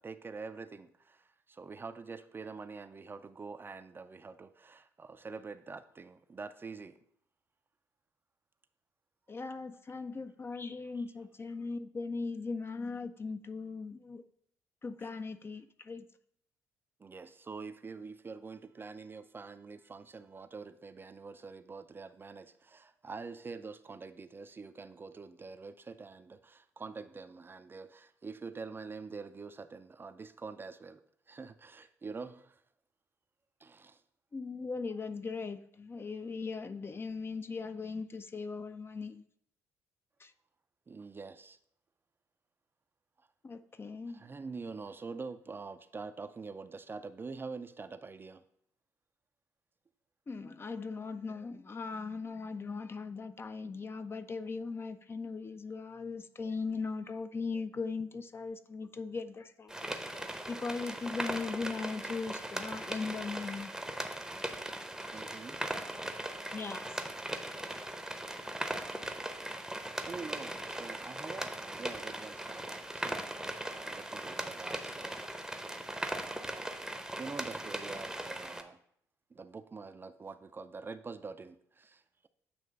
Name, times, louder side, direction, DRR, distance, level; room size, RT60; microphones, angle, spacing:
voice 1, 0.0-7.0 10.9-11.0 17.0-31.0 31.3-32.6 33.6-34.0 40.9-41.6 44.1-48.4 65.1-65.6 70.0-73.3 73.6-75.2 76.2-76.7 77.2-78.8 79.3-82.3, right 4 dB, 25° right, 10 dB, 0.4 m, -45 dB
voice 2, 9.3-14.2 14.8-16.1 34.3-39.2 40.2-40.3 43.4-44.2 50.3-60.0 60.5-63.7 66.5-66.9, left 4 dB, 30° left, 10 dB, 0.5 m, -39 dB
sound 1, 59.7-78.6, right 1 dB, 5° right, 0.7 m, -39 dB
8.5 x 3.1 x 5.1 m, 0.68 s
figure-of-eight pair, 50°, 8 cm